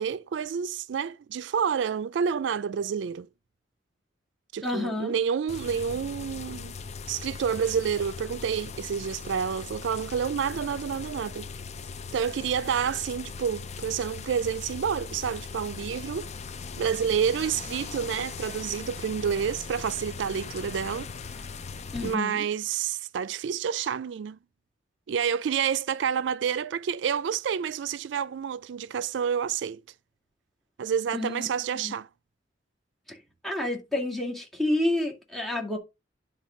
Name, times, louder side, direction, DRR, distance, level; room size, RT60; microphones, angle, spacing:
voice 1, 0.0-3.3 4.5-6.7 7.1-11.5 12.1-16.3 16.8-21.1 22.0-24.4 25.1-29.8 30.8-32.1, right 7 dB, 75° right, 0.3 m, -29 dB
voice 2, 4.6-5.1 21.9-22.4 31.1-31.5 31.8-31.9 33.1-33.2 33.4-35.8, left 1 dB, ahead, 2.3 m, -29 dB
sound 1, 5.5-22.2, left 5 dB, 40° left, 0.5 m, -39 dB
10.0 x 3.8 x 5.1 m
head